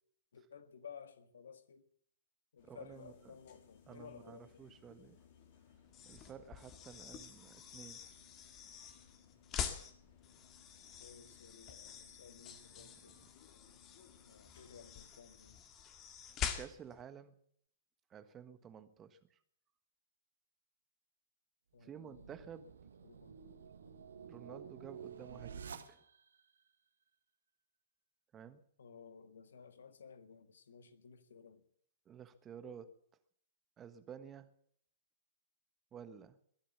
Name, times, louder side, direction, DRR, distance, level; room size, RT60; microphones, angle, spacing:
voice 1, 0.3-1.8 2.5-4.5 11.0-13.2 14.2-15.6 21.7-22.3 23.0-24.0 28.8-31.6, left 6 dB, 70° left, 1.5 m, -56 dB
sound 1, 2.6-15.1, left 8 dB, 50° left, 3.6 m, -65 dB
voice 2, 2.7-3.1 3.9-5.2 6.0-8.0 12.8-13.1 16.3-17.4 18.1-19.4 21.8-22.7 24.2-26.0 28.3-28.6 32.0-33.0 33.8-34.5 35.9-36.4, right 8 dB, 20° right, 1.3 m, -52 dB
sound 2, 5.9-17.0, left 8 dB, 30° left, 1.9 m, -46 dB
sound 3, 21.8-26.4, right 7 dB, 70° right, 1.4 m, -51 dB
22.0 x 7.5 x 8.3 m
figure-of-eight pair, 115°, 0 cm